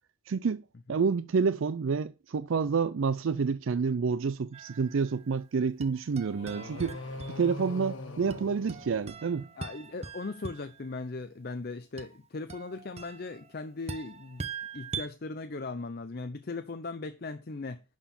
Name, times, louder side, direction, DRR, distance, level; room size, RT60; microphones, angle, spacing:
voice 1, 0.3-0.6 0.9-7.0 7.3-9.5, right 5 dB, 75° right, 0.4 m, -28 dB
sound 1, 4.5-5.4 5.8-7.8 8.3-10.9 12.0-15.1, right 5 dB, 30° right, 0.7 m, -43 dB
sound 2, 6.3-9.6, left 2 dB, 65° left, 1.5 m, -42 dB
voice 2, 9.6-14.4 14.7-17.8, left 3 dB, 50° left, 0.6 m, -38 dB
11.5 x 4.5 x 7.0 m
head